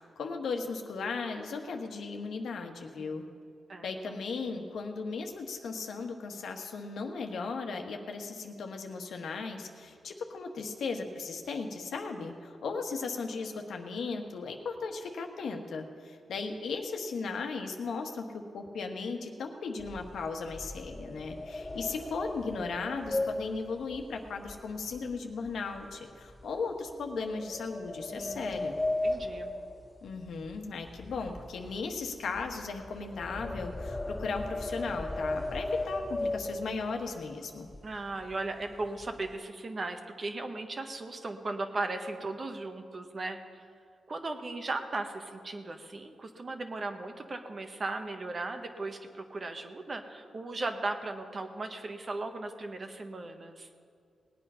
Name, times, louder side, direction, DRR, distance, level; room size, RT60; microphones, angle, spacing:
voice 1, 0.0-3.2 3.8-28.8 30.0-37.7, left 4 dB, 80° left, 4 dB, 1.3 m, -36 dB
voice 2, 3.7-4.2 28.1-28.8 29.0-29.5 37.8-43.6 44.1-53.7, right 2 dB, 45° right, 6 dB, 1.3 m, -37 dB
sound 1, 19.8-25.2 25.5-25.8 26.3-26.4 27.2-30.6 30.8-37.1 37.7-37.8 38.1-38.3 38.7-39.3, left 2 dB, 25° left, 2.5 m, -36 dB
18.5 x 8.7 x 5.6 m, 2.3 s
cardioid pair, 65°, 0 cm